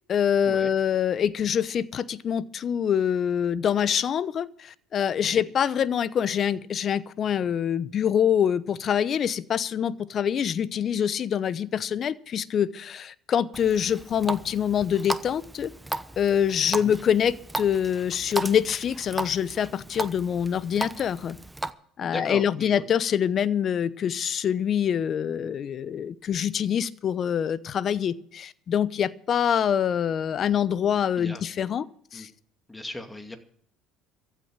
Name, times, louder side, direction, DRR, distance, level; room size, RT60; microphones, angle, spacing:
voice 1, 0.1-15.7 16.2-21.4 22.0-31.8 32.1-32.3, left 8 dB, 45° left, 18 dB, 0.8 m, -25 dB
Water tap faucet, 13.5-21.7, right 1 dB, 5° right, 1.0 m, -36 dB
voice 2, 22.0-22.8 31.2-31.4 32.1-32.3 32.7-33.4, left 1 dB, 15° left, 7 dB, 2.5 m, -37 dB
15.0 x 8.4 x 7.5 m, 0.64 s
supercardioid pair, 75°, 0 cm